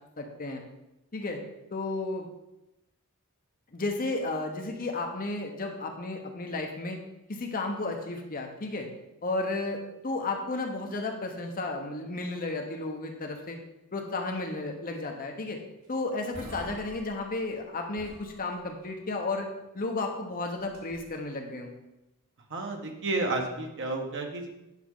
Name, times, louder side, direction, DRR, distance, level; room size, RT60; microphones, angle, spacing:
voice 1, 0.2-0.6 1.1-1.4 1.7-2.3 3.7-7.0 7.3-8.9 9.2-13.6 13.9-15.6 15.9-19.5 19.7-21.7, left 2 dB, 40° left, 2 dB, 1.0 m, -33 dB
sound 1, 15.8-15.9 16.2-17.6 17.9-18.9 20.6-21.2, equal, 85° right, 2.8 m, -47 dB
voice 2, 22.5-24.5, right 2 dB, 60° right, 2 dB, 1.3 m, -31 dB
9.2 x 6.1 x 3.8 m, 0.92 s
head